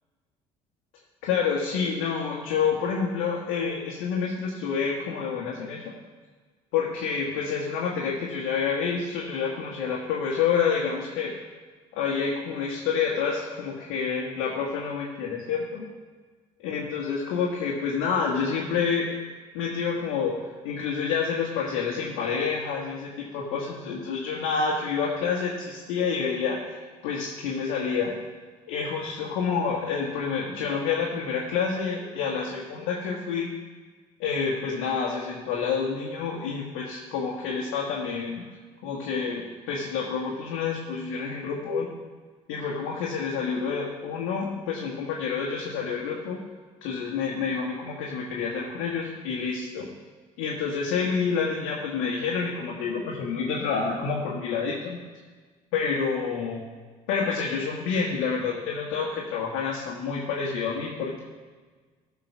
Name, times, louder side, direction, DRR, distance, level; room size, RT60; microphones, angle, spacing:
voice 1, 1.2-5.8 6.7-11.3 11.9-15.8 16.6-19.1 19.5-26.8 27.0-28.1 28.7-33.5 34.2-38.4 38.8-41.9 42.5-46.4 46.8-49.9 50.4-55.0 55.7-56.6 57.1-61.2, left 5 dB, 80° left, -3 dB, 1.5 m, -28 dB
13.0 x 4.7 x 6.0 m, 1.4 s
supercardioid pair, 70°, 17 cm